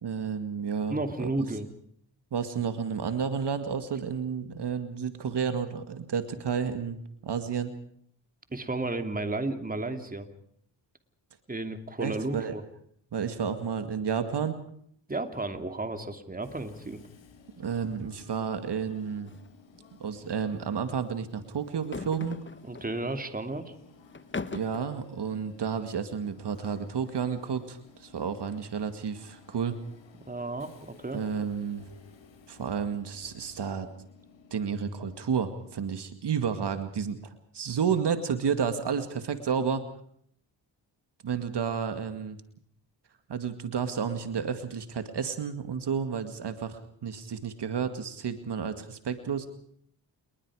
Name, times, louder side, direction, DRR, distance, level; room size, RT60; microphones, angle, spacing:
voice 1, 0.0-1.3 2.3-7.0 7.2-7.7 12.0-12.6 13.1-14.6 17.6-19.3 20.0-22.4 24.5-29.8 31.1-31.8 32.5-33.9 34.5-39.9 41.2-42.4 43.3-49.5, right 6 dB, 65° right, 9 dB, 2.2 m, -31 dB
voice 2, 0.9-1.7 8.5-10.3 11.5-12.6 15.1-17.0 22.6-23.7 30.3-31.2, right 2 dB, 20° right, 7 dB, 2.7 m, -33 dB
Train / Subway metro underground, 16.4-35.9, left 5 dB, 85° left, 4.4 m, -55 dB
sound 1, 19.3-19.5 19.7-19.9 21.7-22.9 24.1-24.9, left 4 dB, 25° left, 1.3 m, -38 dB
29.0 x 21.5 x 4.9 m, 0.65 s
cardioid pair, 80°, 44 cm